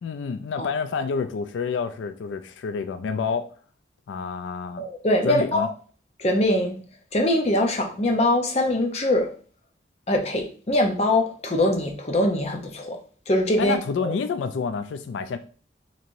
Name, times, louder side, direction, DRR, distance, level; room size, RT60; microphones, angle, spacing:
voice 1, 0.0-3.5 4.1-4.9 5.2-5.7 13.6-15.4, left 5 dB, 90° left, 0.3 m, -28 dB
voice 2, 4.8-5.7 6.2-6.8 7.1-9.3 10.1-13.0 13.3-13.8 14.0-14.1, left 1 dB, 35° left, 0.6 m, -22 dB
4.4 x 2.9 x 2.5 m
head